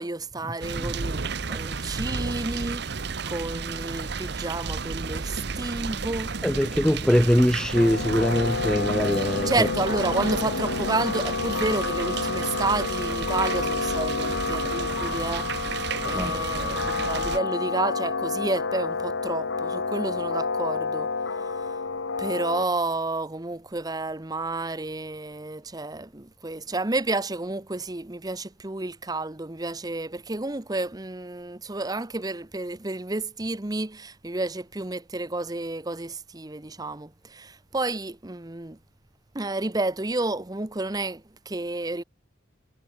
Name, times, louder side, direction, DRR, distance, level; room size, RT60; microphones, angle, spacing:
voice 1, 0.0-6.3 9.5-21.1 21.4-21.5 22.2-38.8 39.3-42.0, right 2 dB, 20° right, 0.9 m, -30 dB
sound 1, 0.6-17.4, right 5 dB, 55° right, 1.0 m, -33 dB
voice 2, 6.4-9.7 16.0-16.4, equal, 5° left, 0.4 m, -22 dB
sound 2, 7.7-22.7, left 4 dB, 75° left, 1.1 m, -29 dB
head